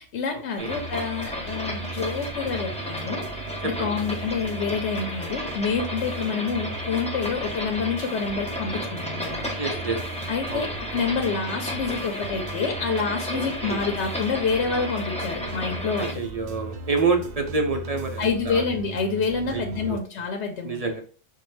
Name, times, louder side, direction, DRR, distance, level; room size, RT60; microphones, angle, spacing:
voice 1, 0.0-3.2 3.6-9.4 10.3-16.2 18.2-20.8, left 5 dB, 75° left, 3 dB, 1.0 m, -28 dB
sound 1, 0.6-16.1, left 1 dB, 10° left, 0.6 m, -33 dB
sound 2, 0.7-20.0, right 3 dB, 75° right, 0.9 m, -38 dB
voice 2, 9.6-10.0 10.5-10.7 13.3-13.8 16.0-18.6 19.5-20.0 20.6-21.0, right 4 dB, 40° right, 4 dB, 0.6 m, -27 dB
5.5 x 2.2 x 3.2 m, 0.40 s
omnidirectional pair, 1.2 m